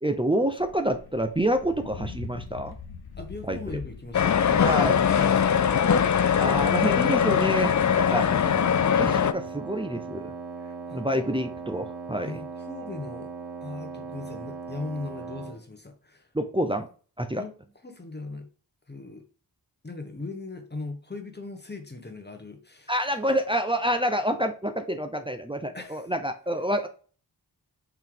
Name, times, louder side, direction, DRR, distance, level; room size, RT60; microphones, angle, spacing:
voice 1, 0.0-2.7 3.5-3.6 4.6-5.0 6.4-8.4 8.9-10.3 10.9-12.3 16.3-16.9 17.2-17.4 22.9-26.9, right 1 dB, 15° right, 5 dB, 0.6 m, -27 dB
sound 1, 0.6-6.0, left 6 dB, 70° left, 1.0 m, -41 dB
voice 2, 3.2-6.0 7.6-7.7 8.9-9.0 10.6-11.4 12.2-13.3 13.6-16.3 17.3-17.5 17.8-18.5 18.9-19.3 19.8-22.9 25.7-26.1, left 3 dB, 25° left, 5 dB, 1.2 m, -39 dB
sound 2, 4.1-9.3, left 8 dB, 45° left, 0.5 m, -21 dB
Wind instrument woodwind instrument, 8.2-15.6, right 5 dB, 90° right, 1.1 m, -38 dB
5.5 x 4.6 x 3.9 m, 0.39 s
wide cardioid pair, 85°, 39 cm